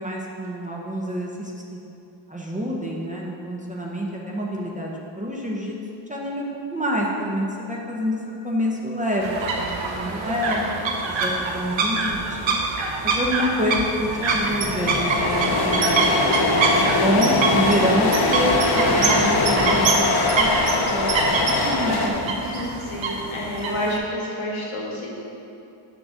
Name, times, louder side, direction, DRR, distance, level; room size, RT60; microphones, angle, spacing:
voice 1, 0.0-1.8 2.3-5.8 6.1-8.2 8.4-12.5 13.0-16.4 17.0-20.1 20.4-22.2, equal, 15° right, -2 dB, 0.7 m, -27 dB
sound 1, 9.2-24.0, right 3 dB, 65° right, 0.9 m, -25 dB
sound 2, 13.3-13.4 13.6-22.1, left 2 dB, 50° left, 0.8 m, -22 dB
voice 2, 22.4-25.1, left 1 dB, 70° left, -3 dB, 1.6 m, -29 dB
6.3 x 3.9 x 6.1 m, 2.7 s
wide cardioid pair, 120°, 50 cm